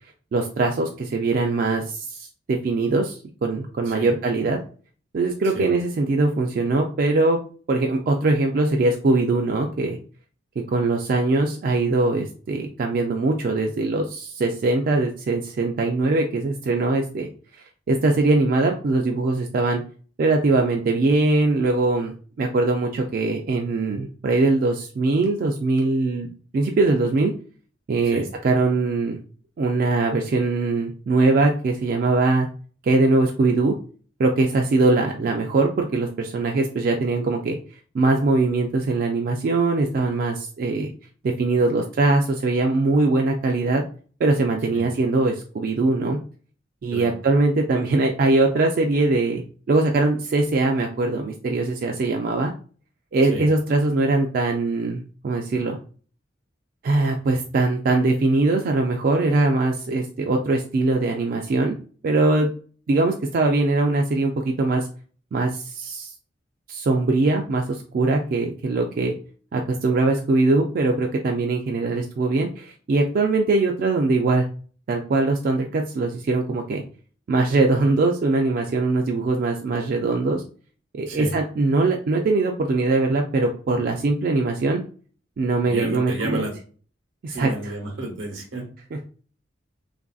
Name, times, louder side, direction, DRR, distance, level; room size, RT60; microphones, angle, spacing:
voice 1, 0.3-4.6 5.1-7.4 7.7-10.0 10.7-17.3 17.9-19.8 20.2-27.3 27.9-29.2 29.6-32.5 32.8-33.8 34.2-37.6 37.9-40.9 41.2-43.8 44.2-46.2 46.8-49.4 49.7-52.5 53.1-55.8 56.8-61.7 62.0-62.5 62.9-64.9 65.3-66.1 66.7-69.1 69.5-74.5 74.9-76.8 77.3-80.4 80.9-84.8 85.4-86.5 87.2-87.7 88.9-89.0, right 3 dB, 50° right, 2 dB, 0.3 m, -21 dB
voice 2, 85.6-86.5 87.3-88.6, right 1 dB, 85° right, 2 dB, 0.9 m, -31 dB
3.2 x 2.5 x 2.3 m, 0.41 s
head